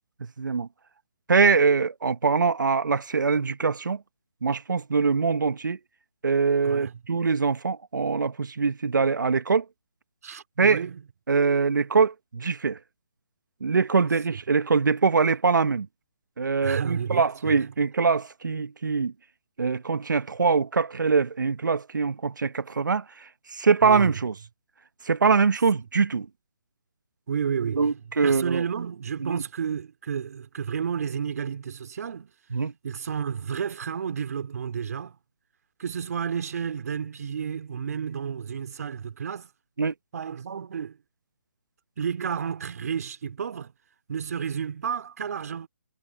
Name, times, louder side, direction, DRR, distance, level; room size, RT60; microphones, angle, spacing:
voice 1, 0.4-0.7 1.3-4.0 4.4-5.8 6.2-9.6 10.6-10.8 11.3-12.8 13.6-15.9 16.4-19.1 19.6-24.3 25.0-26.3 27.8-28.6 29.2-29.4 32.5-32.7 39.8-39.9, right 5 dB, 75° right, 1.1 m, -23 dB
voice 2, 10.2-11.0 16.6-17.7 23.8-24.2 27.3-32.3 32.8-35.2 35.8-39.5 40.1-41.0 42.0-43.7 44.1-45.7, right 7 dB, 55° right, 3.4 m, -31 dB
figure-of-eight pair, 150°, 10 cm